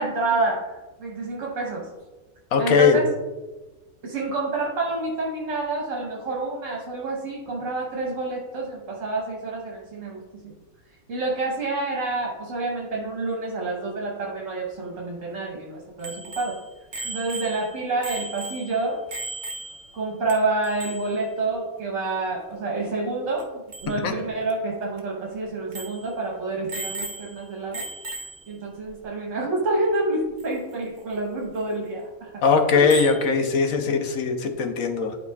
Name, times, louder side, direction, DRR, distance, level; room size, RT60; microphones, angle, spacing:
voice 1, 0.0-1.9 2.6-3.1 4.0-10.5 11.1-16.6 17.0-19.0 19.9-27.8 28.5-32.4 32.7-32.8, right 2 dB, 60° right, -3 dB, 1.5 m, -28 dB
voice 2, 2.5-3.0 24.0-24.1 32.4-35.2, left 5 dB, 70° left, 5 dB, 1.2 m, -20 dB
Bicycle bell, 16.0-20.0 20.3-20.4 20.6-21.2 23.4-23.5 23.7-23.9 24.5-24.6 25.0-25.1 25.7-26.1 26.7-27.4 27.7-28.5 30.4-30.5 32.9-33.3, right 2 dB, 35° right, 1.0 m, -35 dB
11.5 x 4.9 x 2.4 m, 1.2 s
omnidirectional pair, 1.5 m